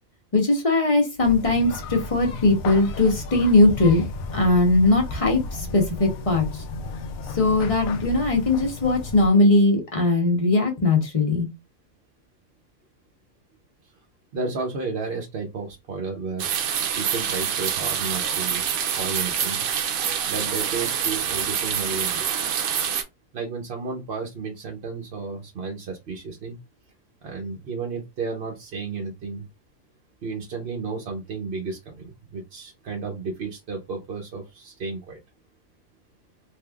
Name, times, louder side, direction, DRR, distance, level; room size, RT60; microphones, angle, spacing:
voice 1, 0.3-4.0 4.3-6.6 7.3-11.5, left 2 dB, 30° left, 1 dB, 0.8 m, -20 dB
sound 1, 1.2-9.3, left 3 dB, 75° left, 1.0 m, -34 dB
voice 2, 14.3-16.5 16.9-19.6 20.3-22.3 23.3-26.6 27.2-29.5 30.2-35.2, right 4 dB, 55° right, 0 dB, 0.8 m, -32 dB
sound 2, 16.4-23.0, right 8 dB, 85° right, 1.1 m, -26 dB
3.4 x 3.0 x 2.3 m, 0.22 s
omnidirectional pair, 1.5 m